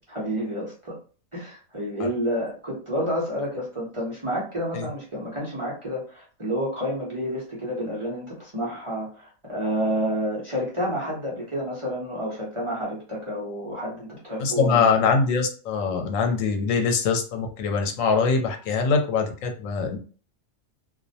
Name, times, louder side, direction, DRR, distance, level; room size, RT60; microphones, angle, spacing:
voice 1, 0.1-0.9 1.3-14.9, equal, 30° right, -6 dB, 0.6 m, -29 dB
voice 2, 14.4-20.0, left 5 dB, 85° left, 4 dB, 1.0 m, -23 dB
2.4 x 2.1 x 2.6 m, 0.40 s
omnidirectional pair, 1.3 m